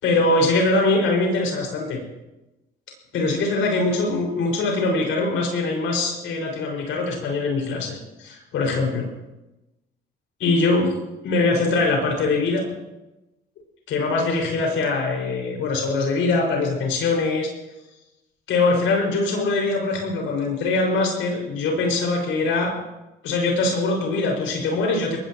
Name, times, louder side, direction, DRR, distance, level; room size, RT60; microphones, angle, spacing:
voice 1, 0.0-2.0 3.1-9.1 10.4-10.9 11.2-12.6 13.9-17.5 18.5-22.7 23.2-25.2, left 3 dB, 85° left, 0 dB, 5.9 m, -22 dB
23.0 x 19.0 x 3.1 m, 0.99 s
cardioid pair, 90°, 20 cm